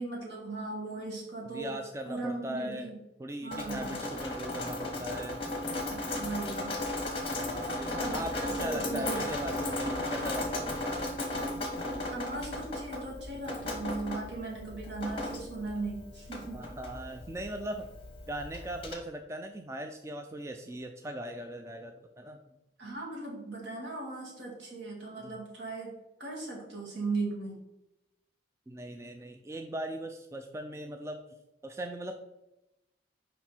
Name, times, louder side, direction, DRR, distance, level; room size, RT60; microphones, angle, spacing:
voice 1, 0.0-1.8 2.1-3.0 3.4-3.9 5.9-6.9 7.9-9.2 12.1-16.6 22.8-25.9 26.2-27.6, right 3 dB, 65° right, -3 dB, 2.4 m, -38 dB
voice 2, 1.5-2.9 3.2-5.4 7.3-11.0 16.5-17.9 18.3-22.4 25.2-25.3 28.7-31.2 31.6-32.1, right 1 dB, 15° right, 5 dB, 0.3 m, -39 dB
Drip, 3.5-18.9, left 1 dB, 30° left, 1.1 m, -36 dB
5.9 x 5.2 x 4.3 m, 0.95 s
head